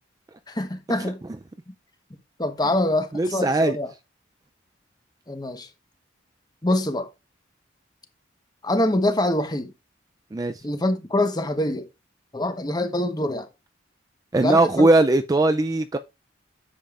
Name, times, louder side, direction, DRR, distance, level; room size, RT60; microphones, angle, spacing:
voice 1, 0.5-1.2 1.7-1.8 2.4-3.9 5.3-5.7 6.6-7.1 8.6-9.7 10.6-11.9 12.3-13.5 14.4-14.9, left 1 dB, 20° left, 1.0 m, -25 dB
voice 2, 3.1-3.8 10.3-10.5 14.3-16.0, right 2 dB, 20° right, 0.3 m, -19 dB
10.0 x 7.2 x 2.4 m
head